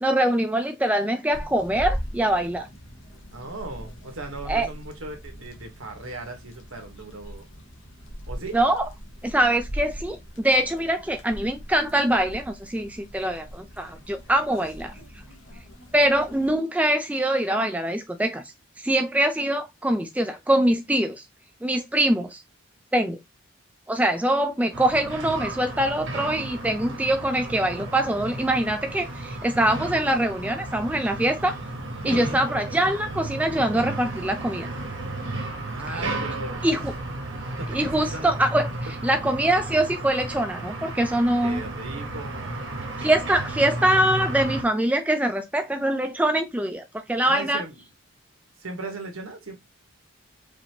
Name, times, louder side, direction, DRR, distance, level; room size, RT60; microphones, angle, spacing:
voice 1, 0.0-2.7 4.5-4.7 8.5-8.9 9.2-14.9 15.9-18.4 18.8-21.2 21.6-22.4 22.9-23.2 23.9-31.6 32.0-34.7 36.6-36.9 37.7-38.7 39.0-41.6 43.0-47.6, right 1 dB, 5° right, 0.4 m, -23 dB
sound 1, 1.3-16.6, equal, 65° left, 1.0 m, -39 dB
voice 2, 3.3-7.5 8.3-8.6 32.1-32.4 35.7-36.8 37.3-38.3 38.9-39.0 41.4-42.7 47.2-47.8 48.6-49.5, right 2 dB, 85° right, 1.3 m, -37 dB
sound 2, 24.7-44.6, right 2 dB, 65° right, 1.1 m, -33 dB
5.0 x 2.6 x 2.9 m
head